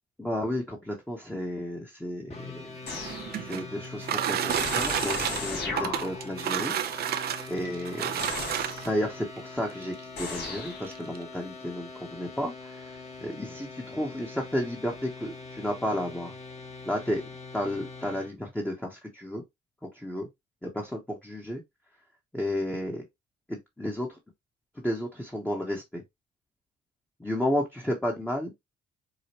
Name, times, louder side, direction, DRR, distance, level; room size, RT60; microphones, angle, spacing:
voice 1, 0.2-2.8 3.4-6.7 7.5-8.3 8.8-12.9 13.2-16.3 16.8-17.2 17.5-19.4 19.9-20.3 20.6-21.6 22.3-23.0 23.5-24.2 24.8-26.0 27.2-28.5, left 1 dB, 5° left, 1.0 m, -32 dB
sound 1, 2.3-18.3, left 3 dB, 35° left, 1.3 m, -43 dB
sound 2, 2.8-9.1 9.9-10.0 10.4-10.5 10.8-11.2, right 10 dB, 60° right, 0.5 m, -30 dB
sound 3, 2.9-3.6 4.5-6.4 8.2-9.0 10.2-10.9, left 3 dB, 70° left, 2.2 m, -36 dB
4.9 x 2.2 x 2.9 m
cardioid pair, 75°, 18 cm